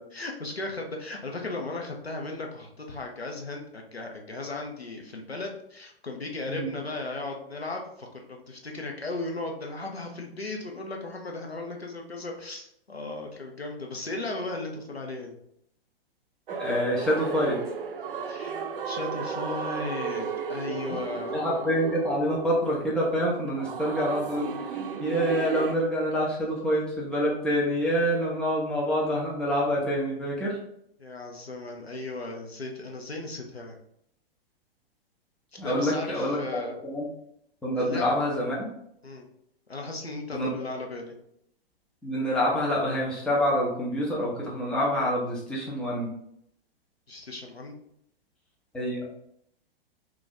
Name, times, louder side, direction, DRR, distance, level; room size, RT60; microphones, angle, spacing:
voice 1, 0.1-15.4 18.3-18.6 18.8-21.4 31.0-33.7 35.6-36.8 37.8-38.1 39.0-39.3 39.7-41.1 47.1-47.7, left 2 dB, 90° left, 1 dB, 0.7 m, -36 dB
voice 2, 16.5-17.6 20.9-21.0 21.3-30.6 35.6-37.1 37.6-38.7 40.3-40.5 42.0-46.1 48.7-49.1, equal, 5° left, -5 dB, 0.5 m, -27 dB
sound 1, 16.5-25.7, right 5 dB, 65° right, 0.4 m, -34 dB
2.6 x 2.4 x 3.9 m, 0.73 s
figure-of-eight pair, 110°, 30 cm